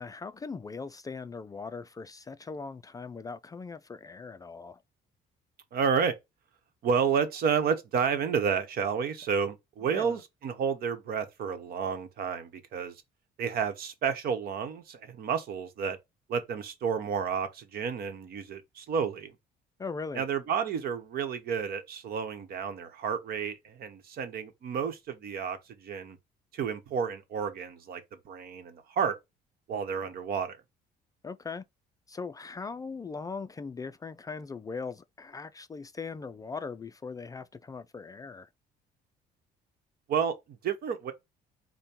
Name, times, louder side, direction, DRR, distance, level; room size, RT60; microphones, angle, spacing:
voice 1, 0.0-4.8 9.8-10.2 19.8-20.2 31.2-31.6 32.1-38.5, left 4 dB, 20° left, 0.3 m, -40 dB
voice 2, 5.7-6.1 6.8-13.0 13.4-16.0 16.3-19.4 20.1-26.2 26.5-29.2 29.7-30.6 40.1-41.1, right 6 dB, 65° right, 1.0 m, -31 dB
5.0 x 2.2 x 4.3 m
cardioid pair, 110°, 17 cm